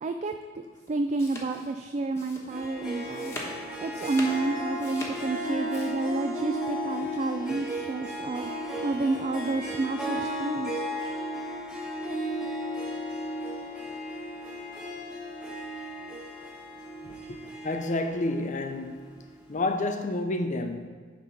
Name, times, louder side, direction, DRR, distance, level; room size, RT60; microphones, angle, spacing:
voice 1, 0.0-3.4 3.8-8.5 8.8-10.8, right 3 dB, 35° right, 0.3 m, -30 dB
sound 1, 0.7-5.9, left 1 dB, 15° left, 1.2 m, -42 dB
Harp, 2.5-19.3, equal, 5° right, 1.3 m, -35 dB
voice 2, 17.0-17.4 17.6-19.0 19.5-20.9, left 2 dB, 40° left, 0.6 m, -29 dB
9.9 x 3.6 x 5.9 m
head